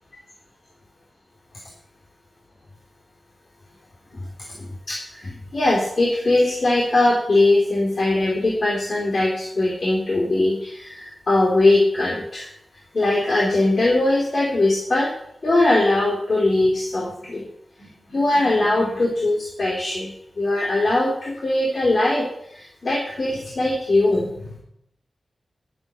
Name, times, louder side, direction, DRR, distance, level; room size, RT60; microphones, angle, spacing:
voice 1, 4.6-12.5 12.9-15.1 15.4-17.4 17.8-20.1 20.4-24.6, left 2 dB, 60° left, -2 dB, 2.9 m, -21 dB
11.0 x 7.6 x 6.2 m, 0.75 s
cardioid pair, 50°, 0 cm